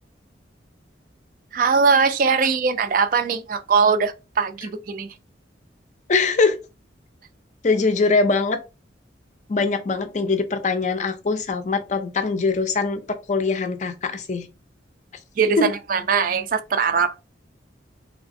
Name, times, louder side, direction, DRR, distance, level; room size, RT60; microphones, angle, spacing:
voice 1, 1.5-5.1 15.4-17.1, right 5 dB, 45° right, 0.4 m, -21 dB
voice 2, 6.1-6.6 7.6-8.6 9.5-14.5 15.6-15.7, left 4 dB, 40° left, 0.4 m, -22 dB
3.2 x 2.9 x 2.6 m
head